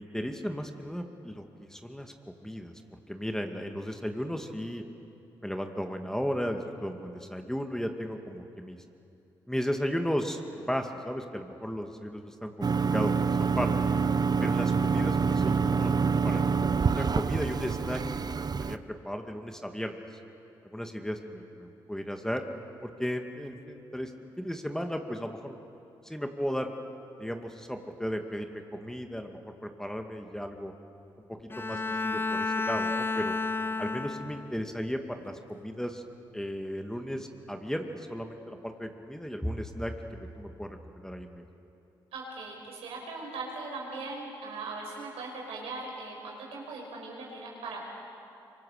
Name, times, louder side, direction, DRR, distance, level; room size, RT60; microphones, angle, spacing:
voice 1, 0.0-2.1 2.4-2.7 3.1-4.8 5.4-8.8 9.5-13.7 14.4-16.5 16.8-18.8 19.0-20.0 20.6-22.4 22.8-25.6 26.0-26.7 27.2-30.7 31.6-33.4 33.8-36.0 36.3-41.4, equal, 5° left, 4 dB, 2.3 m, -35 dB
sound 1, 12.6-18.8, right 5 dB, 40° right, 0.8 m, -26 dB
Bowed string instrument, 31.5-34.7, left 3 dB, 20° left, 0.6 m, -31 dB
voice 2, 42.1-47.8, right 3 dB, 80° right, -1 dB, 5.6 m, -39 dB
25.5 x 24.5 x 6.7 m, 2.8 s
hypercardioid pair, 40°, 10 cm